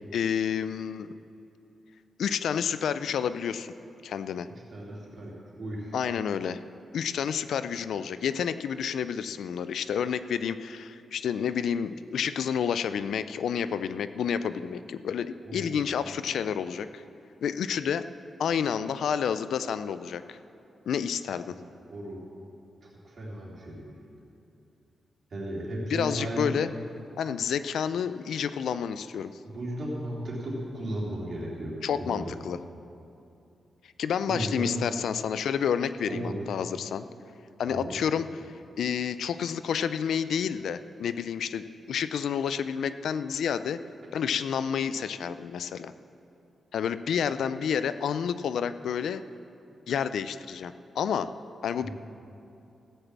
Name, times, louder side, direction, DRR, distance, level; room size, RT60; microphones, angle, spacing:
voice 1, 0.1-1.1 2.2-3.7 4.0-4.5 5.9-6.6 6.9-17.0 17.4-18.0 18.4-20.4 20.9-21.5 25.9-26.7 27.2-29.3 31.8-32.6 34.0-37.1 37.6-43.8 44.1-45.9 46.7-49.2 49.9-51.3 51.6-51.9, left 7 dB, 85° left, 13 dB, 0.4 m, -29 dB
voice 2, 4.7-5.9 15.4-16.0 21.5-21.6 21.9-22.2 22.8-23.8 25.3-26.6 29.4-32.2 34.3-34.8 36.1-36.4 37.6-37.9 51.8-51.9, right 1 dB, 45° right, -5 dB, 3.3 m, -35 dB
15.0 x 6.7 x 7.4 m, 2.8 s
wide cardioid pair, 165°, 0 cm